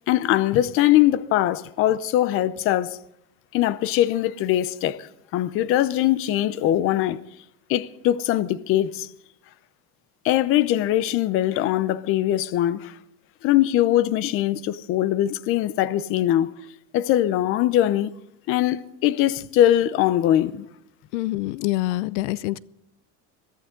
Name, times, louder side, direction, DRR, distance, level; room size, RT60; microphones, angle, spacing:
voice 1, 0.1-3.0 3.5-7.2 7.7-9.1 10.2-12.9 13.4-16.5 16.9-18.1 18.5-20.7, left 13 dB, 40° left, 0.7 m, -21 dB
voice 2, 21.1-22.6, left 18 dB, 80° left, 0.7 m, -26 dB
22.0 x 15.0 x 3.8 m
cardioid pair, 170°, 35 cm